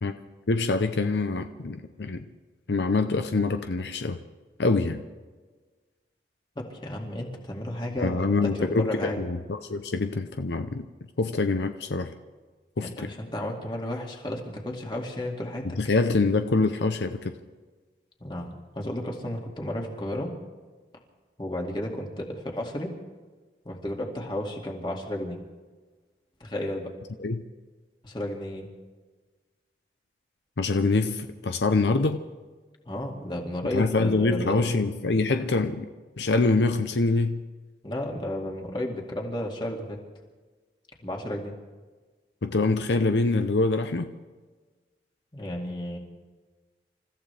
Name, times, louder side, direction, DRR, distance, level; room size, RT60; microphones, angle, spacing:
voice 1, 0.5-2.3 2.7-4.2 4.6-5.0 8.0-10.9 11.2-12.1 12.8-13.1 15.8-17.3 27.2-27.4 30.6-32.2 33.7-35.9 36.2-37.4 42.4-44.1, left 3 dB, 80° left, 8 dB, 0.7 m, -25 dB
voice 2, 6.6-9.2 12.8-15.7 18.2-20.3 21.4-22.9 23.6-25.4 26.4-26.9 28.0-28.7 32.9-34.6 37.8-40.0 41.0-41.5 45.3-46.0, left 1 dB, 25° left, 0 dB, 2.2 m, -33 dB
28.5 x 14.5 x 3.4 m, 1.4 s
head